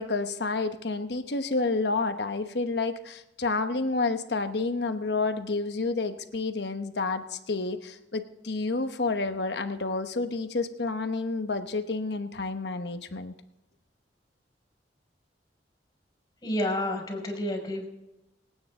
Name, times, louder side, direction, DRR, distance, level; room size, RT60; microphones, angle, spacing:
voice 1, 0.0-13.3, left 3 dB, 70° left, 9 dB, 1.0 m, -29 dB
voice 2, 16.4-17.9, left 1 dB, 20° left, 2 dB, 5.4 m, -30 dB
27.5 x 9.4 x 3.7 m, 0.92 s
head